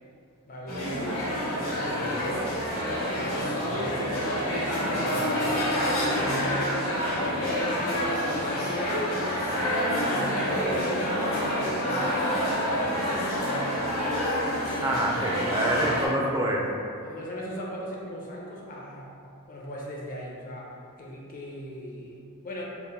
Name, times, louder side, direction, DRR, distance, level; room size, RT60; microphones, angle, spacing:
voice 1, 0.5-1.2 1.8-2.5 2.9-5.7 6.0-9.5 10.0-12.5 12.8-13.6 15.6-16.0 17.0-19.1 19.5-20.7 21.0-22.6, equal, 40° left, -3 dB, 0.6 m, -37 dB
sound 1, 0.7-16.1, equal, 65° left, 1.2 m, -28 dB
voice 2, 14.8-16.8, right 1 dB, 15° right, -2 dB, 0.3 m, -27 dB
3.4 x 2.1 x 4.2 m, 2.6 s
head